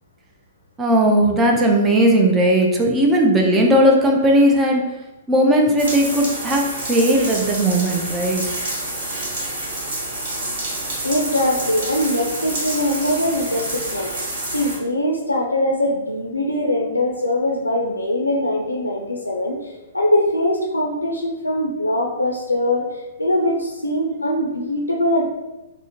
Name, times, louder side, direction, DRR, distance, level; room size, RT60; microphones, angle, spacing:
voice 1, 0.8-4.8 5.3-8.4, right 1 dB, 15° right, 1 dB, 0.4 m, -17 dB
sound 1, 5.8-14.8, right 1 dB, 50° right, 1.1 m, -28 dB
voice 2, 11.0-22.9 23.2-25.3, left 1 dB, 80° left, 0 dB, 0.4 m, -22 dB
3.5 x 2.1 x 2.7 m, 1.0 s
figure-of-eight pair, 115°, 0 cm